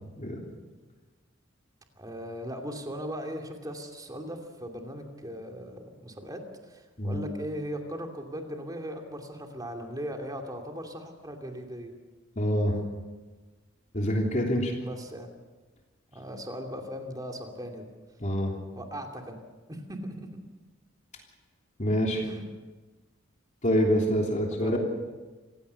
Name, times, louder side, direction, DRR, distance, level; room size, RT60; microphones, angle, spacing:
voice 1, 2.0-6.4 6.7-11.9 14.8-15.3 16.1-17.9 18.8-19.4 19.7-20.3 22.1-22.4 24.6-24.8, equal, 20° right, 3 dB, 2.7 m, -38 dB
voice 2, 12.3-12.7 13.9-14.7 18.2-18.5 21.8-22.2 23.6-24.8, equal, 40° left, 0 dB, 3.2 m, -26 dB
27.0 x 16.0 x 6.9 m, 1.3 s
head